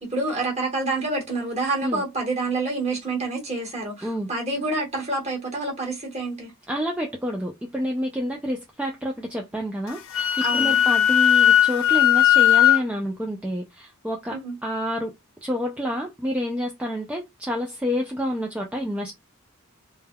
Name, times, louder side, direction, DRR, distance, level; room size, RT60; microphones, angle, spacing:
voice 1, 0.0-6.5 10.4-10.8 14.3-14.5, right 2 dB, 30° right, 1.2 m, -28 dB
voice 2, 6.7-15.1 15.4-19.1, equal, 5° right, 0.3 m, -28 dB
Wind instrument woodwind instrument, 9.9-12.8, left 11 dB, 60° left, 0.5 m, -17 dB
3.3 x 2.2 x 2.2 m
head